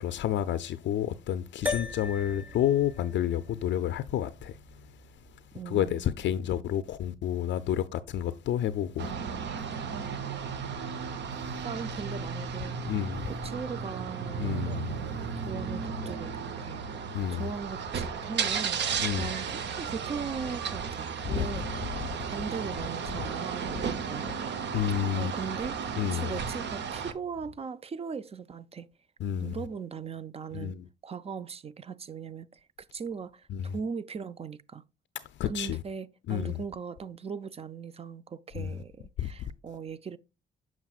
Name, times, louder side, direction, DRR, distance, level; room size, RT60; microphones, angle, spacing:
voice 1, 0.0-4.6 5.7-9.1 12.9-13.3 14.4-14.9 17.1-17.4 19.0-19.3 21.3-21.5 24.7-25.3 26.0-26.3 29.2-29.6 30.5-30.8 33.5-33.7 35.4-35.8 36.3-36.6 38.6-38.7 39.2-39.3, left 10 dB, 65° left, 0.4 m, -30 dB
sound 1, 1.7-6.2, left 3 dB, 10° right, 0.9 m, -39 dB
voice 2, 5.5-6.2 9.9-10.4 11.6-15.0 15.4-16.8 17.3-22.0 22.2-24.5 25.2-28.9 29.4-30.8 31.0-34.8 35.4-40.2, right 6 dB, 30° right, 0.4 m, -39 dB
sound 2, 9.0-27.1, right 6 dB, 60° right, 0.8 m, -34 dB
sound 3, 20.8-27.6, left 3 dB, 80° right, 3.3 m, -55 dB
7.3 x 6.0 x 2.3 m
cardioid pair, 90°, 20 cm